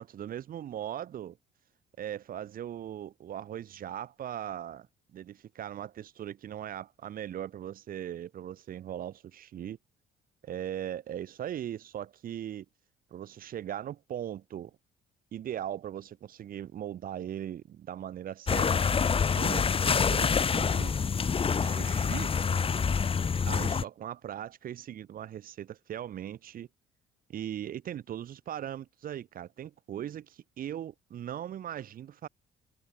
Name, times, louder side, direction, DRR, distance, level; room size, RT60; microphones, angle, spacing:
voice 1, 0.0-1.4 2.0-4.9 5.1-9.8 10.4-12.7 13.1-14.8 15.3-18.8 19.3-20.9 21.6-22.3 23.5-26.7 27.3-32.3, right 10 dB, 55° right, 7.5 m, -39 dB
sound 1, 18.5-23.8, left 6 dB, 35° left, 4.7 m, -26 dB
cardioid pair, 110°, 17 cm